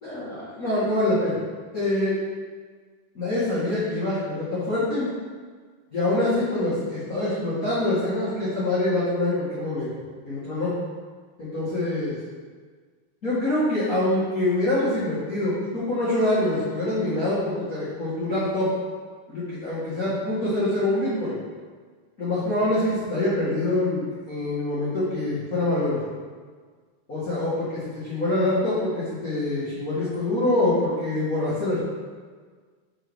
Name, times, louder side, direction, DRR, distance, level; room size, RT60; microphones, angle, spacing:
voice 1, 0.0-1.4 1.7-2.1 3.1-5.1 5.9-9.9 10.2-10.7 11.4-12.1 13.2-18.7 19.3-21.4 22.2-26.0 27.1-27.6 27.9-31.8, left 1 dB, 50° left, -12 dB, 1.0 m, -25 dB
6.3 x 4.2 x 4.8 m, 1.5 s
omnidirectional pair, 4.8 m